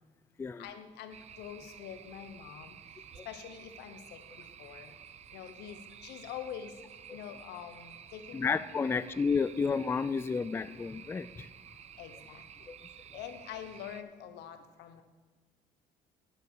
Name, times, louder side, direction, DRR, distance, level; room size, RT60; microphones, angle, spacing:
voice 1, 0.6-2.8 3.2-4.9 5.3-6.7 7.1-8.5 8.8-9.0 12.0-12.4 13.1-15.0, left 9 dB, 85° left, 9 dB, 1.1 m, -45 dB
sound 1, 1.1-14.0, right 8 dB, 40° right, 0.5 m, -52 dB
voice 2, 8.3-11.5 12.7-12.8, left 5 dB, 15° left, 14 dB, 0.3 m, -31 dB
9.6 x 7.2 x 6.4 m, 1.3 s
cardioid pair, 110°, 17 cm